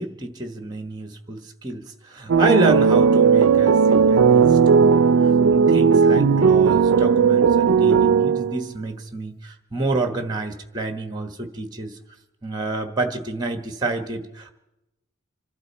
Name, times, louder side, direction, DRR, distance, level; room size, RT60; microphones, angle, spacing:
voice 1, 0.0-12.0 12.4-14.5, right 2 dB, 20° right, 6 dB, 1.3 m, -28 dB
sound 1, 2.3-8.7, right 6 dB, 75° right, 0.5 m, -16 dB
27.0 x 12.0 x 4.3 m, 0.92 s
head